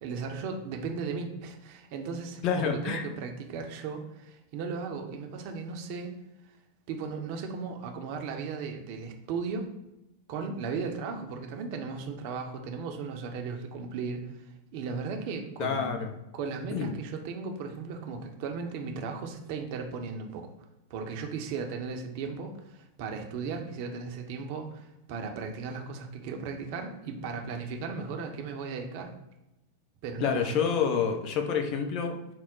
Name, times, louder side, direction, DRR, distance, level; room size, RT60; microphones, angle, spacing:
voice 1, 0.0-6.1 6.9-9.7 10.3-14.3 14.7-15.9 16.3-20.5 20.9-29.1 30.0-30.6, right 5 dB, 45° right, 3 dB, 0.6 m, -36 dB
voice 2, 2.4-3.0 15.6-16.1 16.7-16.9 30.2-32.3, left 6 dB, 40° left, 5 dB, 0.6 m, -28 dB
4.5 x 2.0 x 3.9 m, 0.90 s
figure-of-eight pair, 90°, 0 cm